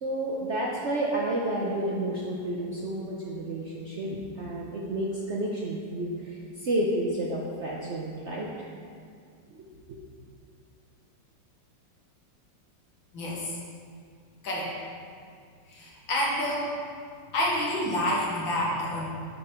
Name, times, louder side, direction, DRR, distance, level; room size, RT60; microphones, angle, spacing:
voice 1, 0.0-8.7 9.5-9.6 9.9-10.0, right 1 dB, 60° right, -3 dB, 0.7 m, -31 dB
voice 2, 13.1-13.6 14.4-14.8 15.7-16.8 17.3-19.0, left 1 dB, 85° left, -5 dB, 2.3 m, -28 dB
8.7 x 5.3 x 4.3 m, 2.2 s
omnidirectional pair, 2.1 m